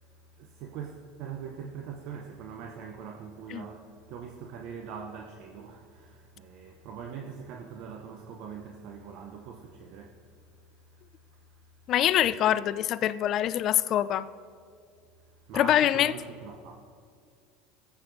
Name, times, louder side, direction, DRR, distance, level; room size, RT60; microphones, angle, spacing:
voice 1, 0.0-11.8 15.2-16.7, right 6 dB, 60° right, 0.7 m, -43 dB
voice 2, 11.9-14.3 15.5-16.1, left 11 dB, 50° left, 0.3 m, -24 dB
14.5 x 8.1 x 2.6 m
hypercardioid pair, 85°, 0 cm